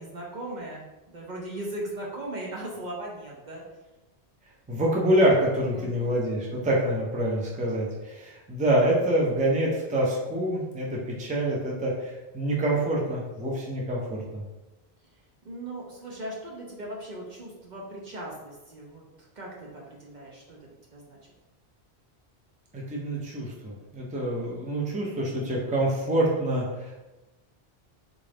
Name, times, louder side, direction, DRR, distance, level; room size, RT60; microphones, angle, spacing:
voice 1, 0.0-3.6 5.7-6.2 15.4-19.0 19.4-21.2, right 1 dB, 50° right, -3 dB, 0.7 m, -38 dB
voice 2, 4.7-14.4 22.7-27.0, right 1 dB, 10° right, -3 dB, 0.5 m, -26 dB
3.8 x 2.5 x 3.3 m, 1.1 s
omnidirectional pair, 1.1 m